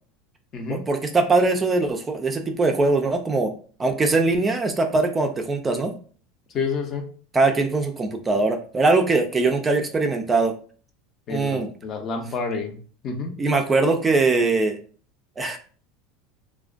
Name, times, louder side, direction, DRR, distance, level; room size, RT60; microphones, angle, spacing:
voice 1, 0.7-3.5 3.8-5.9 7.3-10.5 11.3-11.7 13.4-14.8 15.4-15.6, right 3 dB, 20° right, 4 dB, 0.3 m, -21 dB
voice 2, 6.5-7.1 11.3-12.7 13.0-13.3, left 4 dB, 40° left, 4 dB, 0.6 m, -28 dB
2.4 x 2.1 x 2.4 m, 0.41 s
supercardioid pair, 110°, 0 cm